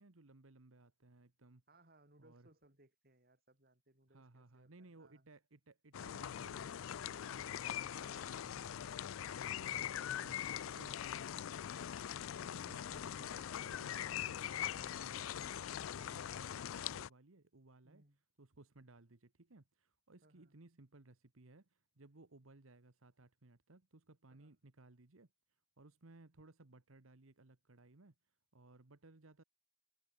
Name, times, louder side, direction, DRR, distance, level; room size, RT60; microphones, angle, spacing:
voice 1, 0.0-1.6 2.2-2.5 4.1-8.6 9.5-9.9 10.2-10.4 10.8-10.9 12.4-18.0 18.4-29.4, right 2 dB, 80° right, 1.3 m, -62 dB
voice 2, 1.7-5.3 7.9-11.6 17.8-18.2 20.2-20.6 24.4-24.5, right 2 dB, 45° right, 3.8 m, -68 dB
sound 1, 5.9-17.1, left 10 dB, 75° left, 0.4 m, -42 dB
head